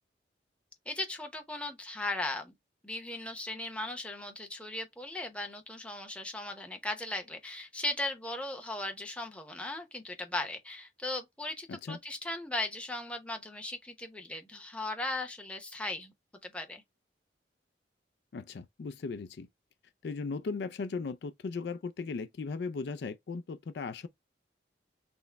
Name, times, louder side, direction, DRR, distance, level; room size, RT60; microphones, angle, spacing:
voice 1, 0.9-2.5 2.8-16.1 16.4-16.8, left 2 dB, 5° left, 0.8 m, -37 dB
voice 2, 18.3-19.5 20.0-24.1, left 4 dB, 65° left, 0.4 m, -37 dB
6.1 x 2.1 x 3.4 m
head